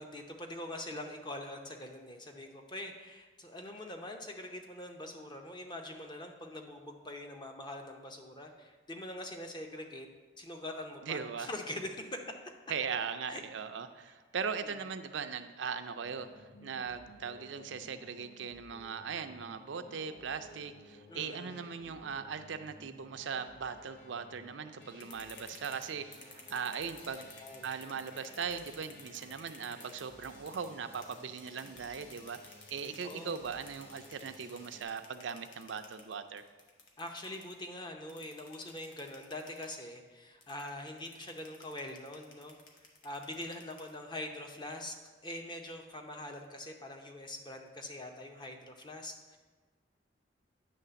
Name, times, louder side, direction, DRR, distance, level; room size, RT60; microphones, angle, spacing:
voice 1, 0.0-10.1 10.4-12.4 13.3-13.4 14.6-14.8 21.1-21.6 27.4-27.7 33.0-33.4 37.0-42.6 43.0-49.4, left 1 dB, 25° left, 3 dB, 0.7 m, -43 dB
voice 2, 11.0-11.5 12.7-27.3 27.6-36.4, right 6 dB, 70° right, 9 dB, 0.5 m, -39 dB
sound 1, 16.0-34.8, left 1 dB, 50° left, 1.6 m, -57 dB
sound 2, 24.8-30.7 30.9-37.5 38.1-39.8 40.4-44.1, left 4 dB, 70° left, 1.2 m, -53 dB
9.3 x 3.3 x 6.8 m, 1.3 s
head